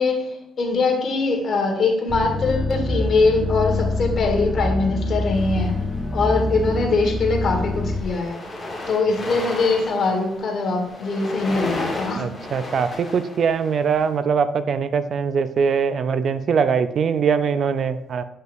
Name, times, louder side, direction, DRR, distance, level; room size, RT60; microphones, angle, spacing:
voice 1, 0.0-5.8 6.1-8.4 8.9-12.3, left 3 dB, 55° left, 2 dB, 1.5 m, -22 dB
sound 1, 2.1-8.0, left 2 dB, 10° left, 1.0 m, -25 dB
sound 2, 5.3-6.3 7.0-7.3 7.5-14.0, left 2 dB, 25° left, 2.1 m, -33 dB
voice 2, 12.2-18.2, right 6 dB, 60° right, 12 dB, 0.4 m, -22 dB
7.6 x 5.5 x 2.6 m, 0.84 s
cardioid pair, 90°, 0 cm